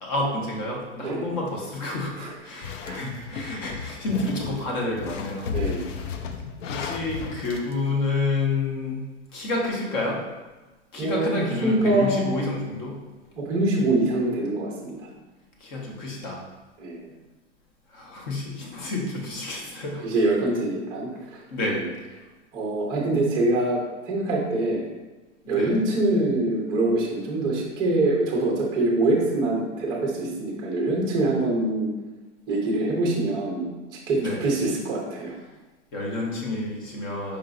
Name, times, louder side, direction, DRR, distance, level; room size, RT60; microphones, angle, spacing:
voice 1, 0.0-5.5 6.7-9.1 9.3-10.2 10.9-13.0 15.6-16.4 17.9-20.0 21.5-21.8 25.4-25.7 34.1-34.4 35.9-37.4, left 2 dB, 40° left, -1 dB, 0.9 m, -29 dB
sound 1, 2.6-7.7, left 6 dB, 80° left, 0.6 m, -34 dB
voice 2, 5.5-5.9 11.0-12.3 13.4-15.1 16.8-17.1 20.0-21.8 22.5-24.8 25.5-31.9 32.5-35.3, right 2 dB, 10° right, -3 dB, 0.6 m, -24 dB
4.7 x 3.0 x 2.5 m, 1.2 s
supercardioid pair, 160°, 36 cm